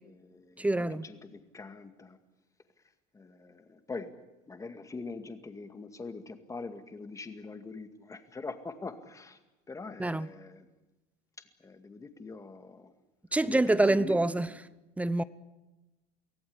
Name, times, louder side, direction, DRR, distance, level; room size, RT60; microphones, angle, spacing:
voice 1, 0.0-2.2 3.1-4.2 4.5-9.4 9.7-10.7 11.4-12.9 13.4-14.5, left 3 dB, 15° left, 2.1 m, -43 dB
voice 2, 0.6-1.0 10.0-10.3 13.3-14.5 15.0-15.2, right 2 dB, 5° right, 0.8 m, -26 dB
24.0 x 16.5 x 9.7 m
supercardioid pair, 125°, 18 cm